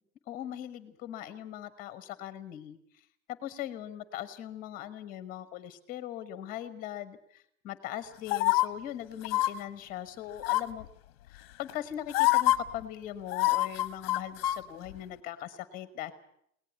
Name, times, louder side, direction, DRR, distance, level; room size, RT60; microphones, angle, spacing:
voice 1, 0.3-2.8 3.3-10.9 11.3-16.1, left 11 dB, 15° left, 13 dB, 1.1 m, -40 dB
sound 1, 8.3-8.7 9.2-9.5 10.4-10.8 11.7-11.8 12.1-12.6 13.3-14.6 14.9-15.0, left 17 dB, 35° left, 0.9 m, -25 dB
22.5 x 18.5 x 8.2 m, 0.71 s
supercardioid pair, 170°, 50 cm